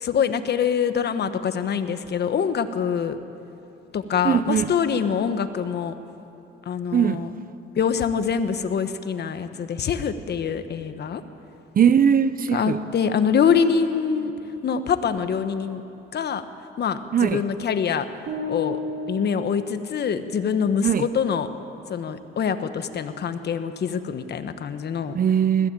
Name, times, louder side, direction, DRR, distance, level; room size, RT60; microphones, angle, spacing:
voice 1, 0.0-3.2 3.9-6.0 6.7-7.3 7.8-11.2 12.5-14.3 14.6-15.8 16.1-16.4 16.8-18.1 18.5-18.8 19.1-21.5 21.9-25.2, left 7 dB, 55° left, 10 dB, 1.3 m, -24 dB
voice 2, 4.2-4.7 6.9-7.2 11.8-12.8 17.1-17.4 20.8-21.1 25.1-25.7, right 8 dB, 45° right, 14 dB, 0.8 m, -20 dB
sound 1, 18.3-20.5, left 2 dB, 75° right, 3.1 m, -33 dB
20.5 x 16.0 x 8.9 m, 2.8 s
cardioid pair, 90°, 20 cm